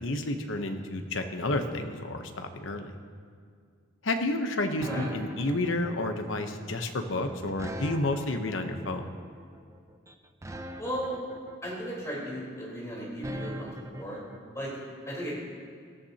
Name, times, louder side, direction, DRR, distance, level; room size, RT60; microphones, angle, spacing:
voice 1, 0.0-3.0 4.0-9.1, left 2 dB, 70° left, 6 dB, 0.9 m, -30 dB
sound 1, 4.8-14.4, right 1 dB, 15° right, 0.5 m, -42 dB
voice 2, 10.8-11.2 11.6-13.7 14.0-14.2 14.5-14.7 15.1-15.3, equal, 15° left, -6 dB, 4.1 m, -35 dB
19.5 x 13.0 x 2.9 m, 2.1 s
head